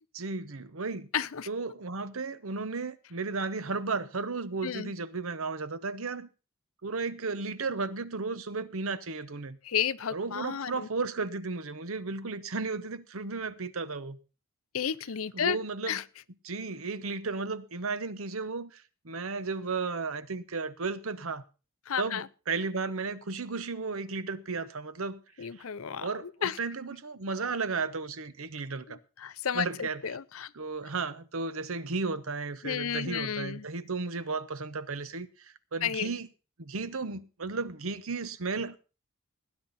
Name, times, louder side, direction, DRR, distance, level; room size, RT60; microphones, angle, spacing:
voice 1, 0.1-1.1 1.5-6.3 6.8-9.6 10.1-14.2 15.3-16.0 16.4-21.4 22.0-25.5 26.0-29.0 29.5-30.0 30.5-36.3 36.6-38.8, right 4 dB, 70° right, 0.9 m, -34 dB
voice 2, 1.1-1.5 4.6-4.9 9.6-10.9 14.7-15.6 15.9-16.0 21.9-22.3 25.4-26.6 28.9-30.5 32.6-33.6 35.8-36.1, left 8 dB, 70° left, 0.6 m, -32 dB
18.5 x 9.9 x 4.1 m
head